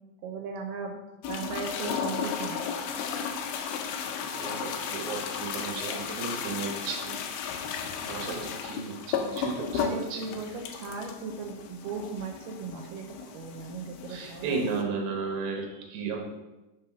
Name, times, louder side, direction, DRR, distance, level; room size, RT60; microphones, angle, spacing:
voice 1, 0.2-1.0 1.3-2.6 9.8-13.1 13.3-14.9, right 5 dB, 85° right, 2 dB, 2.3 m, -37 dB
sound 1, 1.2-14.8, left 7 dB, 80° left, 2.0 m, -34 dB
voice 2, 4.3-7.2 8.1-10.4 14.1-16.2, right 4 dB, 70° right, 1 dB, 2.1 m, -34 dB
5.3 x 3.4 x 5.7 m, 1.1 s
omnidirectional pair, 3.9 m